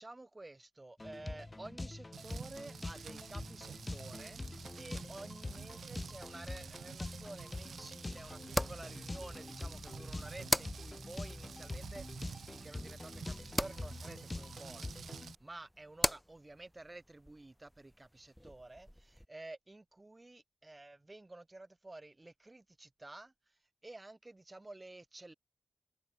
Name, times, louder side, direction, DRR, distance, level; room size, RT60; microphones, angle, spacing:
voice 1, 0.0-4.4 4.8-23.3 23.8-25.3, right 2 dB, 20° right, 4.2 m, -51 dB
sound 1, 1.0-15.3, left 2 dB, 20° left, 1.1 m, -45 dB
Rain, 2.1-15.4, right 7 dB, 85° right, 0.8 m, -50 dB
sound 2, 6.4-19.3, equal, ahead, 1.0 m, -42 dB
wide cardioid pair, 110°, 0 cm